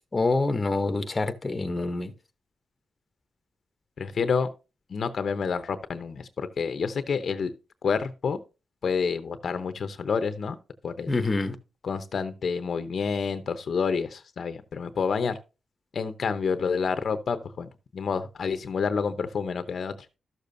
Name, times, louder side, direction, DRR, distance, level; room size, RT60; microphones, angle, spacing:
voice 1, 0.1-2.1 11.1-11.6, left 3 dB, 25° left, 0.8 m, -26 dB
voice 2, 4.0-4.5 4.9-7.5 7.8-8.4 8.8-10.6 10.8-11.1 11.8-15.4 15.9-19.9, left 5 dB, 60° left, 0.7 m, -28 dB
12.5 x 6.8 x 2.6 m
wide cardioid pair, 115°, 0 cm